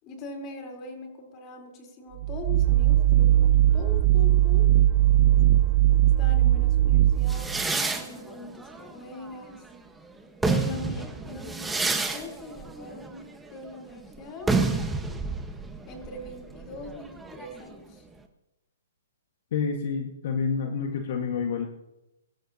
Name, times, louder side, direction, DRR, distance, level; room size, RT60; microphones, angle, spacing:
voice 1, 0.0-4.7 6.2-9.6 10.4-13.2 13.5-14.5 15.9-18.0, left 2 dB, 30° left, 2 dB, 4.0 m, -41 dB
sound 1, 2.2-7.6, right 13 dB, 40° right, 0.4 m, -20 dB
sound 2, 7.3-9.8 10.2-17.7, right 3 dB, 5° right, 1.4 m, -30 dB
voice 2, 19.5-21.7, left 5 dB, 55° left, 2 dB, 1.8 m, -28 dB
24.0 x 12.5 x 2.9 m, 0.92 s
hypercardioid pair, 140°, 0 cm